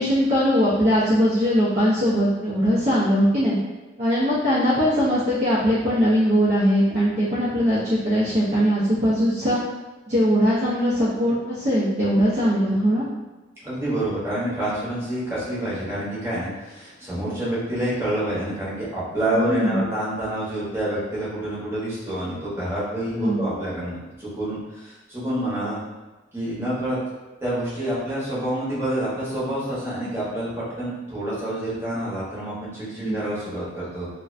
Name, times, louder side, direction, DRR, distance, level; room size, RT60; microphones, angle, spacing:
voice 1, 0.0-3.6 4.0-9.6 10.1-13.1 19.3-19.8 23.1-23.4 33.0-33.1, equal, 35° right, -10 dB, 0.5 m, -20 dB
voice 2, 13.6-25.8 26.3-27.0 27.4-34.1, right 1 dB, 15° right, -10 dB, 0.8 m, -28 dB
2.4 x 2.1 x 2.4 m, 1.2 s
head